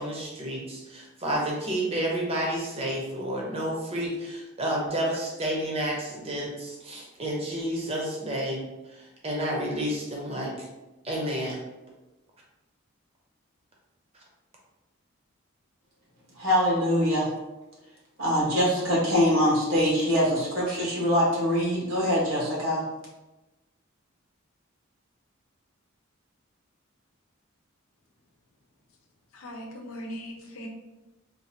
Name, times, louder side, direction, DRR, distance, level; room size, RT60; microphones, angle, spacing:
voice 1, 0.0-10.7 11.0-11.6, right 1 dB, 30° right, -3 dB, 0.8 m, -30 dB
voice 2, 16.3-17.3 18.2-22.8, equal, 80° right, -5 dB, 1.4 m, -23 dB
voice 3, 29.3-30.7, equal, 85° left, 1 dB, 0.7 m, -39 dB
3.9 x 2.6 x 2.8 m, 1.1 s
head